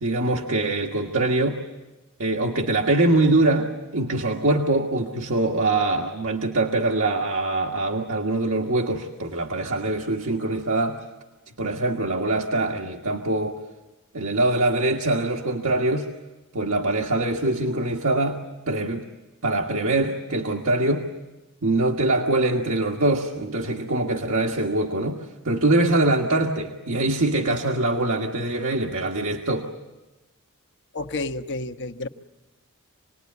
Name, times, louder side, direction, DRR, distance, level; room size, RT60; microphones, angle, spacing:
voice 1, 0.0-1.6 2.2-11.0 11.6-13.6 14.1-16.1 16.5-19.0 19.4-21.1 21.6-29.7, right 2 dB, 65° right, 1 dB, 1.6 m, -23 dB
voice 2, 30.9-32.1, left 2 dB, 55° left, 6 dB, 1.2 m, -30 dB
27.5 x 20.0 x 9.6 m, 1.1 s
head